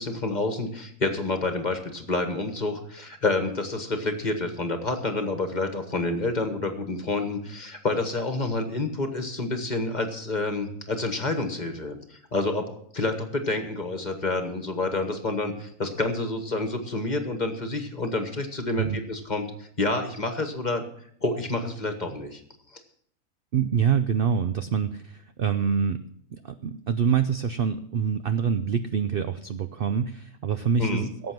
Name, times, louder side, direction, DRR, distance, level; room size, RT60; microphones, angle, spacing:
voice 1, 0.0-20.8 21.2-22.4 30.8-31.1, left 2 dB, 30° left, 6 dB, 1.5 m, -28 dB
voice 2, 23.5-26.0 26.3-31.3, right 7 dB, 60° right, 10 dB, 0.6 m, -26 dB
17.0 x 7.6 x 6.0 m, 0.65 s
omnidirectional pair, 1.6 m